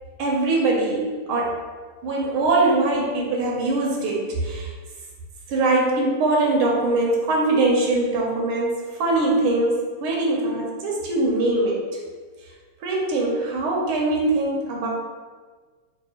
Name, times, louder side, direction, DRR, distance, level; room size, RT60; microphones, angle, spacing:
voice 1, 0.2-1.6 2.0-4.7 5.5-8.7 9.0-11.8 12.8-14.9, right 2 dB, 90° right, -2 dB, 1.6 m, -22 dB
4.5 x 2.4 x 2.8 m, 1.5 s
omnidirectional pair, 2.3 m